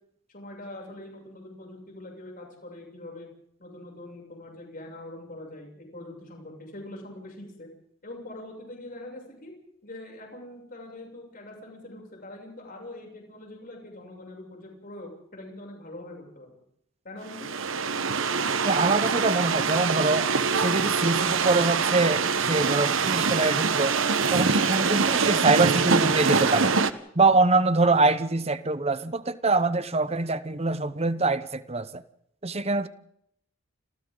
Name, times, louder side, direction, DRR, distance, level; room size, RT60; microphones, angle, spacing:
voice 1, 0.3-3.3 3.6-7.7 8.0-9.5 9.8-16.5 17.0-17.5, left 1 dB, 45° left, 7.5 m, -43 dB
sound 1, 17.2-26.9, right 5 dB, 75° right, 1.2 m, -24 dB
voice 2, 18.6-24.0 24.3-26.8 27.1-32.0 32.4-32.9, right 3 dB, 30° right, 0.9 m, -24 dB
29.5 x 27.0 x 4.0 m
head